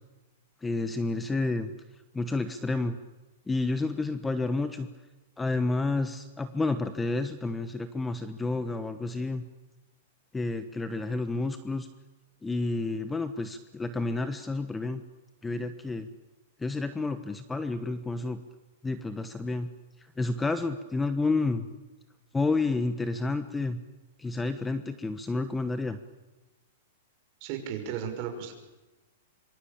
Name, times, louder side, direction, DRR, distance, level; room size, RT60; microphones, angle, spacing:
voice 1, 0.6-1.7 2.1-3.0 3.5-4.9 5.4-9.4 10.3-11.9 12.4-15.0 15.4-16.1 16.6-18.4 18.8-19.7 20.2-21.7 22.3-23.8 24.2-26.0, left 3 dB, 10° left, 11 dB, 1.1 m, -30 dB
voice 2, 27.4-28.5, right 8 dB, 40° right, 4 dB, 6.3 m, -34 dB
26.0 x 24.5 x 8.8 m, 1.1 s
hypercardioid pair, 150°, 0 cm